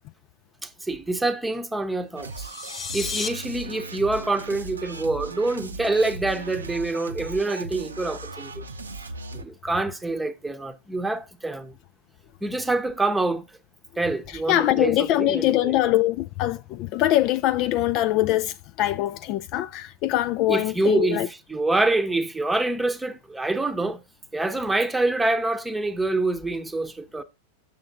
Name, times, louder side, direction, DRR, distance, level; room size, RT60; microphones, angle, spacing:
voice 1, 0.6-2.5 2.9-8.6 9.4-11.7 12.4-13.5 14.0-15.7 20.5-24.0 24.3-27.2, right 2 dB, 5° right, 0.9 m, -26 dB
sound 1, 2.2-3.3, left 5 dB, 25° left, 1.2 m, -32 dB
sound 2, 2.2-9.4, right 3 dB, 75° right, 0.8 m, -37 dB
voice 2, 14.3-21.3, left 14 dB, 40° left, 0.4 m, -23 dB
7.5 x 6.5 x 3.7 m
figure-of-eight pair, 90°, 0 cm